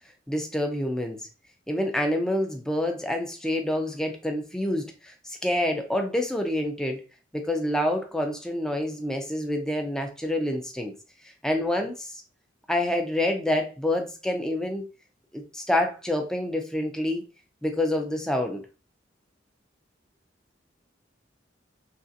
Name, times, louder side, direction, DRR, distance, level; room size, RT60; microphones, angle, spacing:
voice 1, 0.3-1.2 1.7-7.0 7.3-10.9 11.4-12.2 12.7-14.8 15.3-17.2 17.6-18.6, left 1 dB, 5° left, 3 dB, 0.4 m, -27 dB
3.2 x 2.5 x 2.5 m, 0.32 s
head